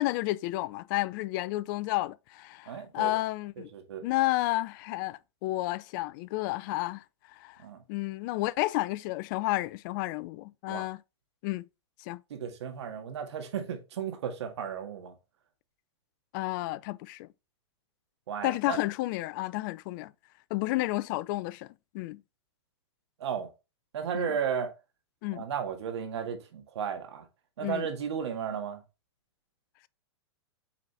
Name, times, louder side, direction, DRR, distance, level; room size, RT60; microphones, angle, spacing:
voice 1, 0.0-3.7 4.0-7.0 7.4-7.6 7.9-11.0 11.4-11.7 12.1-12.2 16.3-17.3 18.4-20.1 20.5-21.7 21.9-22.2 24.1-24.3 25.2-25.4 27.6-27.9, left 18 dB, 45° left, 0.4 m, -31 dB
voice 2, 2.7-3.1 3.6-4.0 7.6-7.8 10.7-10.9 12.3-15.1 18.3-18.8 23.2-23.5 23.9-24.7 25.3-27.3 27.6-28.8, right 7 dB, 70° right, 2.0 m, -34 dB
7.4 x 4.1 x 3.3 m
hypercardioid pair, 120°, 15 cm